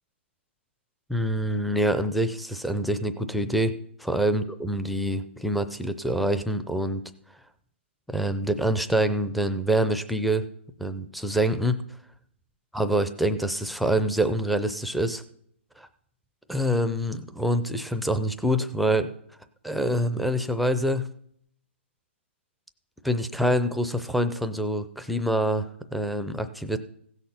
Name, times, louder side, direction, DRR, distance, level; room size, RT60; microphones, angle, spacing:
voice 1, 1.1-7.0 8.1-10.4 10.8-11.8 12.7-15.2 15.8-15.9 16.5-19.1 19.6-21.1 23.0-26.8, equal, ahead, 10 dB, 0.5 m, -26 dB
16.0 x 6.6 x 5.8 m, 0.66 s
hypercardioid pair, 150°, 7 cm